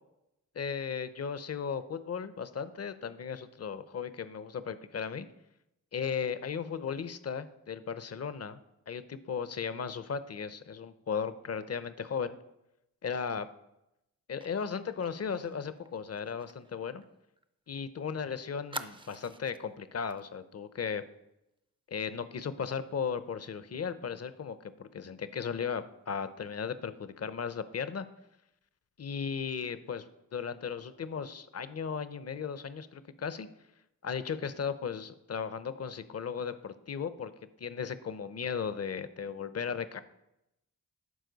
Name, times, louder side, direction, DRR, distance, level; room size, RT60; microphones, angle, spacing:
voice 1, 0.5-5.3 5.9-8.6 8.9-12.3 13.0-13.5 14.3-17.0 17.7-21.0 21.9-28.1 29.0-30.0 30.3-33.5 34.0-37.3 37.6-40.0, left 6 dB, 40° left, 13 dB, 0.6 m, -36 dB
Fire, 14.4-17.8 18.1-18.2 18.7-19.7 20.1-20.3 20.6-20.8, right 2 dB, 15° right, 0.4 m, -46 dB
11.5 x 4.5 x 4.0 m, 0.88 s
cardioid pair, 45°, 37 cm